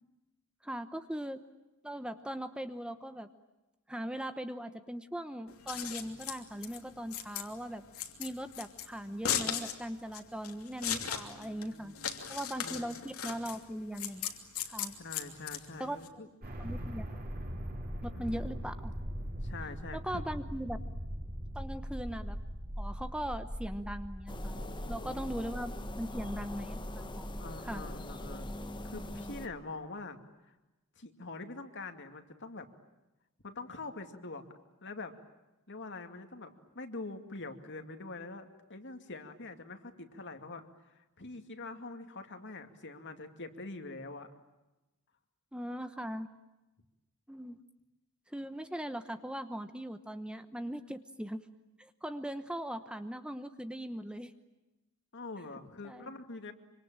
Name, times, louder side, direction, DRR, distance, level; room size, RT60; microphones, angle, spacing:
voice 1, 0.6-1.4 1.8-3.3 3.9-7.8 8.2-11.9 12.3-14.3 14.7-14.9 15.8-16.2 16.6-17.1 18.0-18.9 19.9-20.8 21.5-22.4 22.8-24.6 24.9-27.3 27.6-27.8 45.5-46.3 47.3-47.6 48.3-51.4 51.8-54.3 55.8-56.1, equal, 5° right, 9 dB, 1.0 m, -39 dB
Scissors, 5.5-16.1, left 8 dB, 70° left, 2.9 m, -38 dB
voice 2, 11.1-12.3 12.6-12.9 15.0-16.3 18.1-18.4 19.4-20.2 24.6-25.4 27.4-28.5 28.8-30.2 31.0-32.7 33.4-34.4 34.8-35.1 35.7-44.3 55.1-56.5, left 3 dB, 55° left, 7 dB, 2.5 m, -45 dB
sound 1, 16.4-29.4, equal, 45° right, 5.0 m, -41 dB
sound 2, 24.3-29.5, left 1 dB, 20° left, 1.3 m, -44 dB
26.0 x 25.5 x 8.9 m, 1.0 s
head